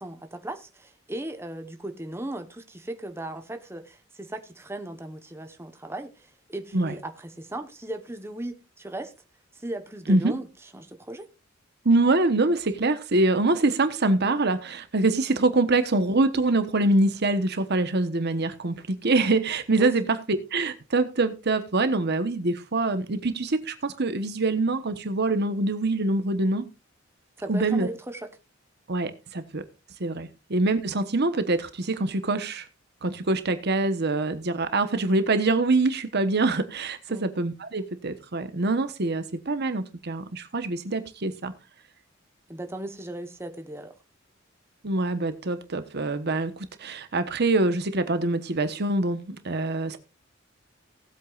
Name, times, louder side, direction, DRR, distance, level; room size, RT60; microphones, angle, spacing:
voice 1, 0.0-9.1 9.5-10.5 10.7-11.3 19.8-19.9 27.4-28.3 37.1-37.3 42.5-43.9, right 1 dB, 10° right, 1.1 m, -37 dB
voice 2, 11.8-26.7 27.5-27.9 28.9-29.6 30.0-32.7 33.0-41.5 44.8-50.0, right 2 dB, 55° right, 1.1 m, -25 dB
18.5 x 8.3 x 2.5 m
head